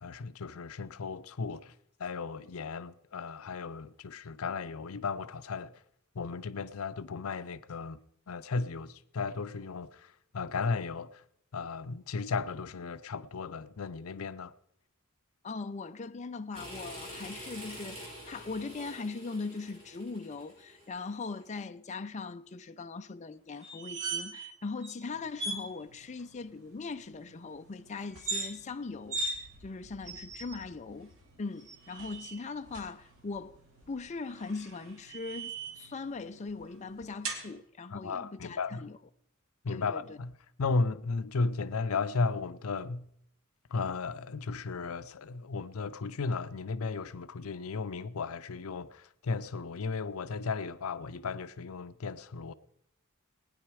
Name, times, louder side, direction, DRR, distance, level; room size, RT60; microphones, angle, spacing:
voice 1, 0.0-1.7 2.0-5.7 6.1-8.0 8.3-11.2 11.5-14.5 37.9-38.9 39.6-40.3 40.6-43.1 43.7-52.5, left 4 dB, 75° left, 0.6 m, -35 dB
voice 2, 15.4-31.1 31.4-33.6 33.9-39.0 39.7-40.2, left 4 dB, 35° left, 0.5 m, -40 dB
sound 1, 16.5-21.4, equal, 30° right, 6.8 m, -46 dB
sound 2, 23.6-24.5 24.8-24.9 25.4-25.6 28.1-28.5 29.1-29.4 30.0-30.6 31.6-32.4 34.3-35.9 37.2-37.4, right 3 dB, 65° right, 2.4 m, -37 dB
sound 3, 25.1-37.5, right 1 dB, 80° right, 5.2 m, -59 dB
19.5 x 9.9 x 4.8 m
head